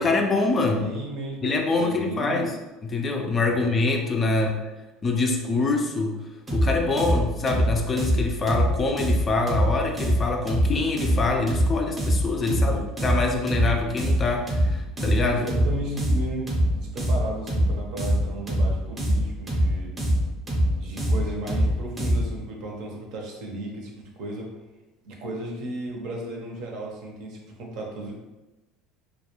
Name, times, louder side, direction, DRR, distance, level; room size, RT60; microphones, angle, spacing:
voice 1, 0.0-0.9 1.4-2.5 2.8-4.5 5.0-6.2 6.5-15.4, left 3 dB, 30° left, 3 dB, 0.3 m, -25 dB
voice 2, 0.8-2.5 3.4-3.8 4.1-4.4 12.4-12.8 15.3-19.9 20.8-24.5 25.0-28.1, right 1 dB, 65° right, -1 dB, 0.6 m, -35 dB
sound 1, 6.5-22.4, equal, 20° right, 0.7 m, -24 dB
2.2 x 2.2 x 2.9 m, 1.1 s
supercardioid pair, 115°, 0 cm